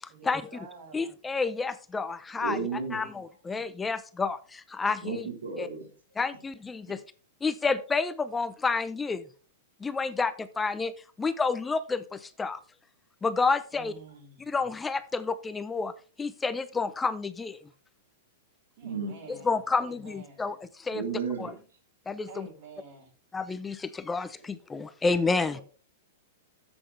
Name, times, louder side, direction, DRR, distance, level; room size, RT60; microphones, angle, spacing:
voice 1, 0.1-1.0 13.7-14.5 18.8-20.4 22.3-23.1 25.5-25.6, right 4 dB, 55° right, 2 dB, 4.9 m, -48 dB
voice 2, 0.9-2.6 2.9-5.3 5.6-5.7 6.2-7.0 7.4-9.2 9.8-10.9 11.2-12.6 13.2-13.9 14.5-15.9 16.2-17.6 19.3-21.0 21.4-21.5 22.1-22.5 23.3-25.6, left 4 dB, 15° left, 13 dB, 0.6 m, -30 dB
voice 3, 2.4-3.0 5.0-5.9 18.8-19.2 20.9-21.5, right 5 dB, 85° right, 1 dB, 2.6 m, -33 dB
10.0 x 8.0 x 3.3 m, 0.37 s
hypercardioid pair, 120°, 0 cm